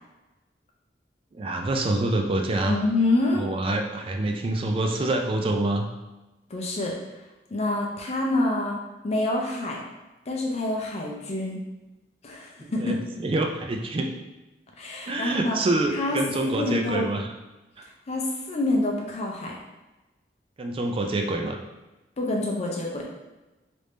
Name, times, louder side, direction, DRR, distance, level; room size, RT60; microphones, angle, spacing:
voice 1, 1.3-2.8 3.4-5.9 12.6-14.1 15.1-17.3 20.6-21.6, right 2 dB, 30° right, 3 dB, 0.4 m, -26 dB
voice 2, 2.6-3.5 6.5-6.9 7.5-8.8 9.0-9.8 10.3-11.6 12.2-13.0 14.8-15.6 15.9-17.1 18.1-19.6 22.2-23.1, left 2 dB, 40° left, -1 dB, 0.5 m, -27 dB
3.3 x 2.6 x 3.1 m, 1.1 s
head